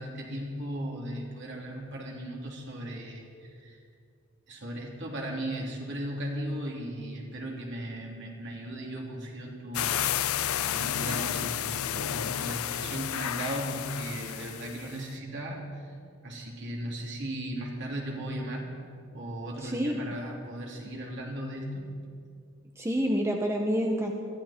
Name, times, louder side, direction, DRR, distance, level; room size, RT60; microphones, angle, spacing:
voice 1, 0.0-3.8 4.5-10.0 10.7-15.9 16.2-18.7 19.1-21.9, right 1 dB, 55° right, -1 dB, 3.3 m, -37 dB
sound 1, 9.7-15.0, left 10 dB, 85° left, 0.5 m, -31 dB
voice 2, 19.6-20.0 22.8-24.1, equal, 15° right, 1 dB, 1.0 m, -28 dB
21.5 x 14.5 x 4.4 m, 2.3 s
head